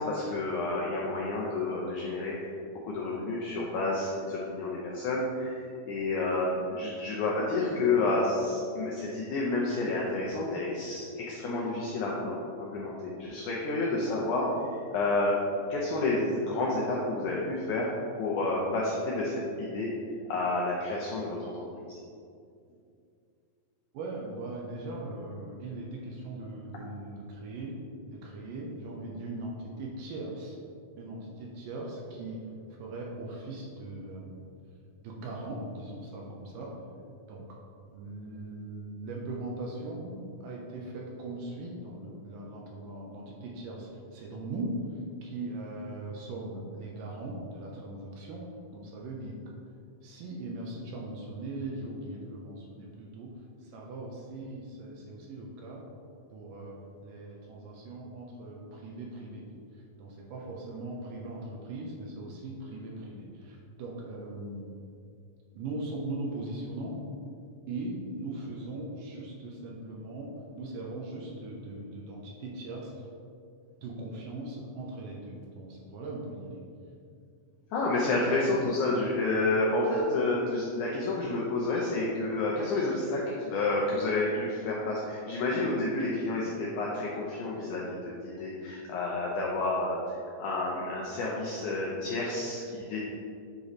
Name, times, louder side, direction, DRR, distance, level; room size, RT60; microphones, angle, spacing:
voice 1, 0.0-2.5 2.8-15.3 15.7-19.9 20.3-22.0 77.7-93.0, left 2 dB, 80° left, -4 dB, 1.7 m, -30 dB
voice 2, 23.9-27.8 28.1-30.6 31.0-32.4 32.8-34.5 35.0-36.8 37.3-37.6 37.9-44.8 45.2-49.6 50.0-53.3 53.6-55.9 56.3-59.5 59.7-64.7 65.6-67.0 67.7-73.1 73.8-76.7, right 2 dB, 75° right, -2 dB, 2.1 m, -39 dB
8.4 x 3.0 x 4.0 m, 2.4 s
omnidirectional pair, 4.3 m